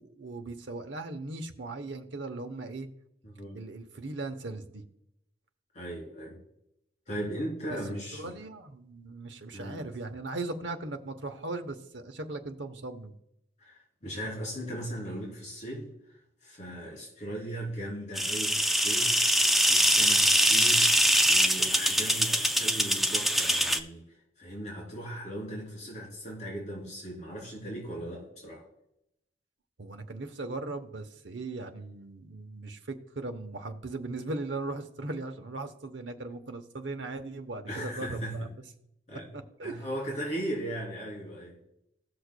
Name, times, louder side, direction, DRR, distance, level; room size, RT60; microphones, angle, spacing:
voice 1, 0.0-2.9 3.5-4.8 7.7-7.8 8.1-13.2 29.8-38.5 39.6-39.8, right 2 dB, 70° right, 7 dB, 0.9 m, -38 dB
voice 2, 3.2-3.6 5.7-6.4 7.1-8.4 9.5-9.8 13.6-21.0 21.3-28.6 37.7-38.5 39.1-39.3 39.6-41.6, right 1 dB, 40° left, -4 dB, 3.3 m, -38 dB
sound 1, 18.2-23.8, equal, ahead, 0.4 m, -23 dB
18.0 x 6.5 x 2.2 m, 0.80 s
head